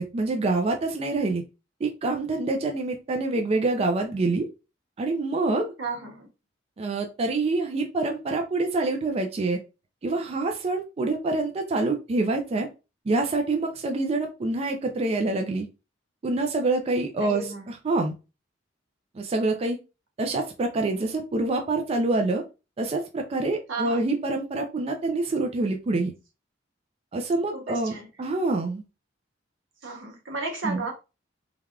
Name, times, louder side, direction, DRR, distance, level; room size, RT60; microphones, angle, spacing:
voice 1, 0.0-1.4 1.8-4.5 5.0-5.7 6.8-9.6 10.0-12.7 13.1-15.7 16.2-17.4 17.8-18.1 19.2-19.8 20.2-22.4 22.8-26.1 27.1-28.8 30.6-30.9, right 2 dB, 30° right, 0.3 m, -26 dB
voice 2, 5.8-6.3 17.2-17.7 23.7-24.0 27.5-28.1 29.8-30.9, right 4 dB, 85° right, 0.9 m, -33 dB
3.3 x 2.2 x 2.3 m
head